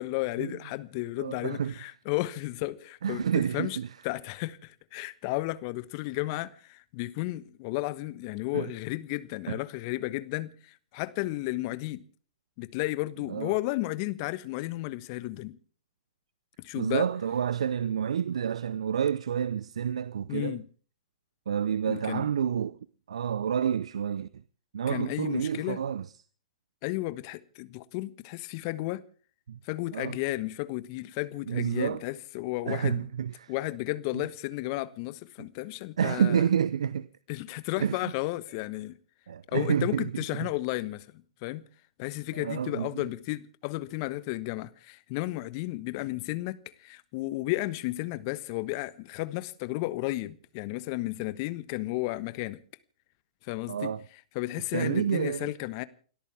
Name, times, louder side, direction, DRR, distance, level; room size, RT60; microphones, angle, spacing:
voice 1, 0.0-3.8 4.0-12.0 12.6-15.6 16.6-17.1 20.3-20.7 21.9-22.3 24.9-25.8 26.8-29.0 29.6-33.1 33.5-36.4 37.3-38.9 39.5-41.1 41.4-41.6 42.0-52.6 53.4-53.9 54.3-55.8, left 19 dB, 45° left, 1.3 m, -33 dB
voice 2, 1.2-1.7 3.0-3.9 8.5-8.7 9.5-9.6 13.3-13.5 16.8-20.6 21.5-22.8 23.1-24.3 24.7-26.1 29.5-29.6 29.9-30.2 31.5-32.0 32.7-33.5 34.1-34.2 36.0-37.1 37.8-38.1 39.3-40.5 42.3-43.0 53.7-54.0 54.7-55.5, right 8 dB, 70° right, 0.7 m, -29 dB
29.5 x 13.0 x 3.5 m
figure-of-eight pair, 110°, 3 cm